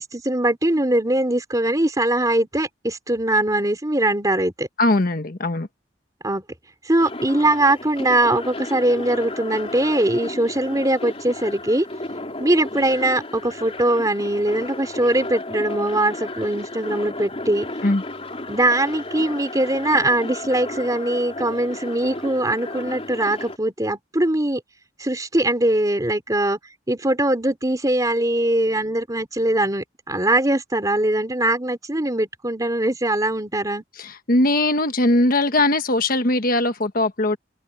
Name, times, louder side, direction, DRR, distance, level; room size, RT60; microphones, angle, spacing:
voice 1, 0.0-4.7 6.2-6.4 6.8-11.8 12.4-17.7 18.5-24.6 25.0-26.6 26.9-33.8, right 1 dB, 20° right, 3.4 m, -21 dB
voice 2, 4.8-5.7 17.8-18.0 34.3-37.4, left 2 dB, 50° left, 1.3 m, -20 dB
sound 1, 7.0-23.6, left 2 dB, 35° left, 3.4 m, -33 dB
head